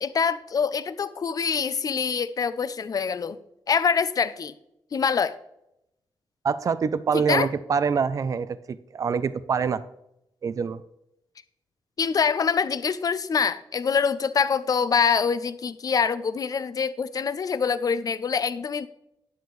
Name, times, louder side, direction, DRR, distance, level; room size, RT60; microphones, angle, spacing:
voice 1, 0.0-3.4 3.7-4.5 4.9-5.4 7.1-7.5 12.0-18.9, left 6 dB, 45° left, 14 dB, 0.5 m, -25 dB
voice 2, 6.4-9.8 10.4-10.8, right 6 dB, 40° right, 15 dB, 0.4 m, -25 dB
10.5 x 6.8 x 3.1 m, 0.82 s
cardioid pair, 100°, 9 cm